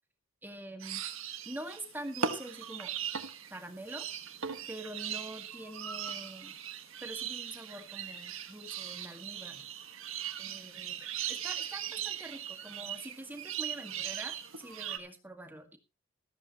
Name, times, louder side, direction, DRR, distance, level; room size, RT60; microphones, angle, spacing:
voice 1, 0.4-1.0 1.5-2.9 3.5-4.1 4.7-6.6 7.0-9.7 10.4-15.8, right 1 dB, 10° right, 6 dB, 1.9 m, -45 dB
sound 1, 0.8-15.0, right 8 dB, 75° right, 1.6 m, -39 dB
14.0 x 13.5 x 3.0 m, 0.28 s
head